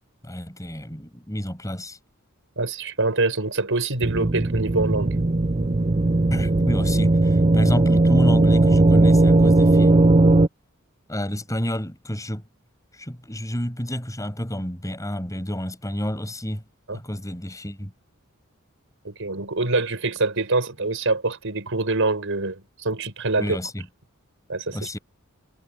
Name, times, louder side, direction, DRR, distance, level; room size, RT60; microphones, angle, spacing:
voice 1, 0.2-2.0 6.3-10.1 11.1-12.4 12.9-16.6 16.9-17.9 23.4-23.9 24.7-25.0, equal, 15° left, 6.8 m, -29 dB
voice 2, 2.6-5.2 16.9-17.0 19.0-23.6 24.5-24.9, right 3 dB, 65° right, 5.9 m, -25 dB
sound 1, 4.0-10.5, right 2 dB, 30° right, 0.6 m, -18 dB
head